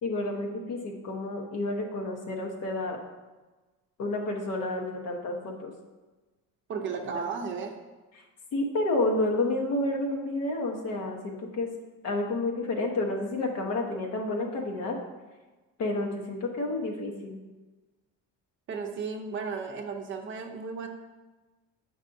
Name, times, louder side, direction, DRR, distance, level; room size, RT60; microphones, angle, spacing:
voice 1, 0.0-3.0 4.0-5.7 7.0-7.2 8.2-8.3 8.5-11.7 12.0-15.0 15.8-17.4, left 2 dB, 60° left, 1 dB, 1.1 m, -30 dB
voice 2, 6.7-7.7 18.7-20.9, right 5 dB, 40° right, 3 dB, 0.6 m, -34 dB
8.6 x 5.3 x 2.6 m, 1.2 s
cardioid pair, 170°, 30 cm